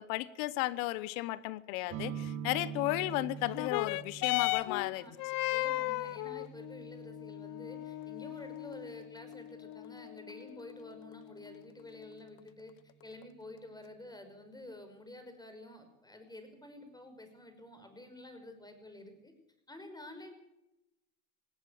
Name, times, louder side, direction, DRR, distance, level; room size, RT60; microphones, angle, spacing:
voice 1, 0.0-5.0, left 18 dB, 65° left, 18 dB, 1.1 m, -34 dB
sound 1, 1.9-9.5, right 7 dB, 50° right, 3.5 m, -46 dB
sound 2, 3.4-12.4 13.2-13.3, left 19 dB, 50° left, 0.8 m, -37 dB
voice 2, 4.6-5.1 5.5-12.7 13.0-19.3 19.7-20.3, left 1 dB, 10° left, 7 dB, 5.7 m, -50 dB
19.0 x 17.0 x 8.5 m, 0.87 s
hypercardioid pair, 95°, 43 cm